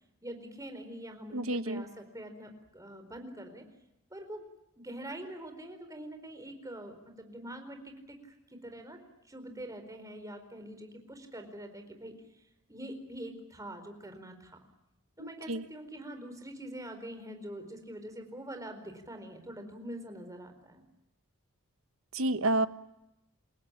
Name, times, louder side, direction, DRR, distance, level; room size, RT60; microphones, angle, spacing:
voice 1, 0.2-3.6 4.1-4.4 4.8-9.0 9.2-12.1 12.7-14.6 15.2-20.8, right 1 dB, 15° right, 6 dB, 4.4 m, -44 dB
voice 2, 1.3-1.8 15.2-15.6 22.1-22.7, right 2 dB, 70° right, 11 dB, 1.3 m, -30 dB
29.0 x 17.0 x 9.9 m, 0.88 s
head